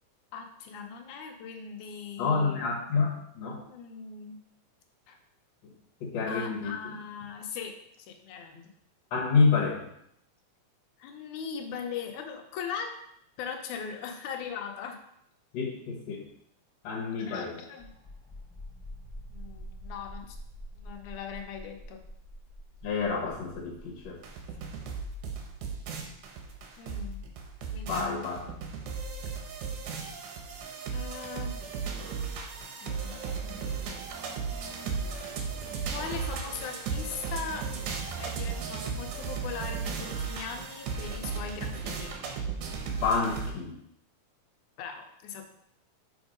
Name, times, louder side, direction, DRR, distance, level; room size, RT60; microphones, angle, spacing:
voice 1, 0.3-2.7 3.7-4.4 5.1-5.2 6.3-8.6 11.0-13.0 13.4-15.0 17.3-17.9 19.3-20.4 20.7-22.0 26.8-27.2 27.7-28.2 30.9-31.6 32.8-33.2 35.9-37.7 38.2-42.1 44.8-45.5, left 6 dB, 80° left, 4 dB, 2.2 m, -39 dB
voice 2, 2.2-3.6 5.6-5.7 6.0-6.8 9.1-9.9 15.5-16.3 16.8-17.6 22.8-24.2 27.8-28.5 42.9-43.8, left 4 dB, 65° left, -2 dB, 2.0 m, -28 dB
sound 1, 17.8-31.1, equal, ahead, 1.5 m, -47 dB
sound 2, 24.2-43.5, right 5 dB, 75° right, 2.3 m, -35 dB
6.2 x 4.4 x 5.1 m, 0.75 s
omnidirectional pair, 3.6 m